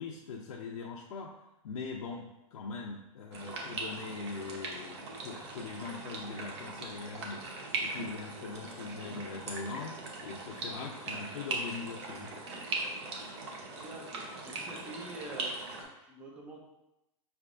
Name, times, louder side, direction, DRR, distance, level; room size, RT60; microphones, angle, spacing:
voice 1, 0.0-1.3 1.6-7.4 7.8-12.3, left 4 dB, 85° left, -1 dB, 0.6 m, -41 dB
sound 1, 3.3-15.8, right 3 dB, 50° right, 0.9 m, -40 dB
voice 2, 13.7-15.5 15.8-16.6, right 2 dB, 5° right, -1 dB, 0.3 m, -46 dB
5.7 x 3.4 x 2.5 m, 0.90 s
supercardioid pair, 170°, 18 cm